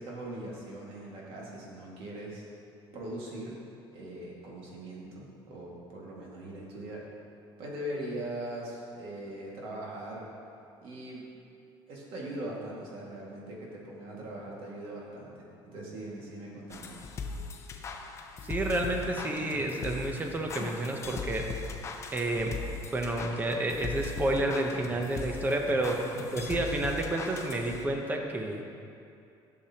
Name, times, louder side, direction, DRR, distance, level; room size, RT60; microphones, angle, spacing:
voice 1, 0.0-2.4 2.9-3.6 3.9-7.0 7.6-10.3 10.8-11.3 11.9-17.0 26.2-26.4, right 1 dB, 65° right, -4 dB, 1.9 m, -40 dB
sound 1, 16.7-28.1, left 4 dB, 30° left, 0.6 m, -39 dB
voice 2, 18.5-21.5 22.1-22.6 22.9-28.6, right 1 dB, 20° right, 3 dB, 0.7 m, -30 dB
12.0 x 6.7 x 2.9 m, 2.6 s
cardioid pair, 150°, 10 cm